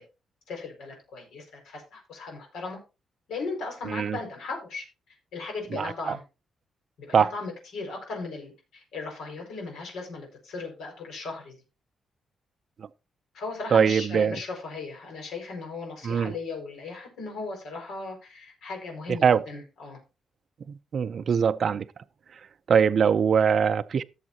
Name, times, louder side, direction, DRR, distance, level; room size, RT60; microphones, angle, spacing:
voice 1, 0.5-2.8 3.3-6.2 7.0-11.6 13.3-20.0, left 3 dB, 85° left, 4.9 m, -37 dB
voice 2, 13.7-14.4 16.0-16.3 19.2-19.4 20.9-21.8 22.7-24.0, right 7 dB, 45° right, 0.5 m, -22 dB
17.0 x 7.3 x 2.8 m
cardioid pair, 155°, 0 cm